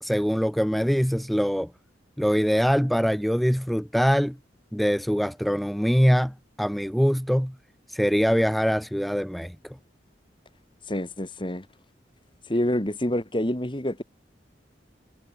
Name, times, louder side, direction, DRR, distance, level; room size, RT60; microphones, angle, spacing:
voice 1, 0.0-1.7 2.2-4.4 4.7-7.5 7.9-9.7, equal, ahead, 1.4 m, -23 dB
voice 2, 10.9-11.7 12.5-14.0, left 1 dB, 25° left, 2.2 m, -27 dB
head